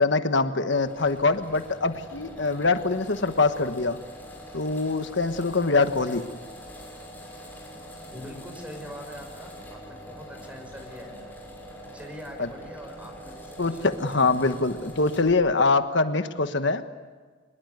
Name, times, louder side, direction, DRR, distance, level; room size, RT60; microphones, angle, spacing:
voice 1, 0.0-4.0 4.5-6.2 12.4-12.5 13.6-16.8, left 3 dB, 65° left, 9 dB, 1.3 m, -24 dB
sound 1, 0.7-15.4, equal, 10° left, 6.6 m, -44 dB
voice 2, 5.8-6.2 8.1-11.2 11.9-13.9 14.2-14.3, equal, 5° right, 4 dB, 5.5 m, -43 dB
25.0 x 22.0 x 9.4 m, 1.5 s
head